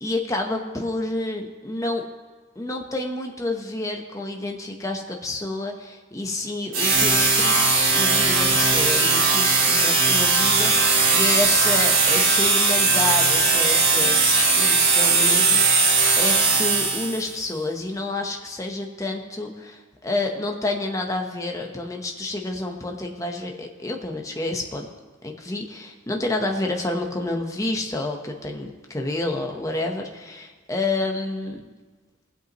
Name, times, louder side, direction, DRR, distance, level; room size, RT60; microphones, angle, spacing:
voice 1, 0.0-2.0 2.6-24.9 25.2-31.6, left 2 dB, 15° left, 2 dB, 0.9 m, -29 dB
sound 1, 6.7-17.3, right 4 dB, 85° right, 3.7 m, -19 dB
20.0 x 8.1 x 3.0 m, 1.3 s
head